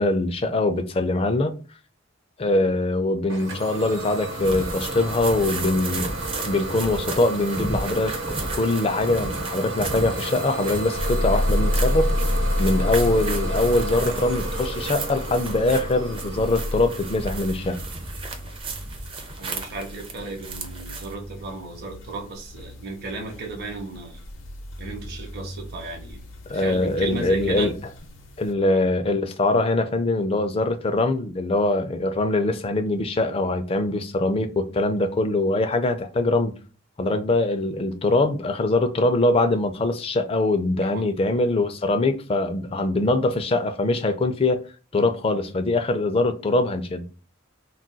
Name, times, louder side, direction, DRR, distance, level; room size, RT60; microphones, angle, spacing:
voice 1, 0.0-1.5 2.4-6.1 6.4-12.1 12.6-17.8 26.5-27.7 28.4-36.6 37.0-44.6 44.9-47.0, left 2 dB, 30° left, 0.4 m, -23 dB
Idling / Domestic sounds home sounds, 3.3-18.8, right 2 dB, 75° right, 1.0 m, -33 dB
sound 1, 4.4-21.1, right 3 dB, 25° right, 0.5 m, -34 dB
sound 2, 11.0-28.5, left 1 dB, 75° left, 0.6 m, -30 dB
voice 2, 19.4-24.2 24.8-26.2 26.5-27.7 28.7-28.9 40.9-41.0, right 3 dB, 55° right, 0.8 m, -35 dB
2.3 x 2.2 x 3.8 m
head